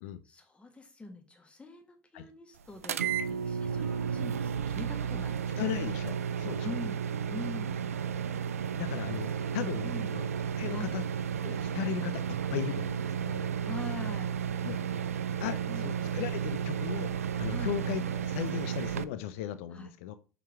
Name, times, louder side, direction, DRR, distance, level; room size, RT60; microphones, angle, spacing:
voice 1, 0.2-5.7 6.6-7.0 7.3-8.0 9.8-10.2 10.7-10.9 13.6-14.4 15.7-15.9 17.5-17.7 19.7-19.9, left 3 dB, 15° left, 4 dB, 1.3 m, -43 dB
sound 1, 2.8-19.0, right 8 dB, 80° right, 0.4 m, -33 dB
voice 2, 5.5-6.8 8.8-10.3 10.6-11.1 11.4-12.2 12.5-13.5 14.6-14.8 15.4-20.1, left 11 dB, 60° left, 12 dB, 0.4 m, -37 dB
6.1 x 4.4 x 4.5 m, 0.36 s
figure-of-eight pair, 70°, 8 cm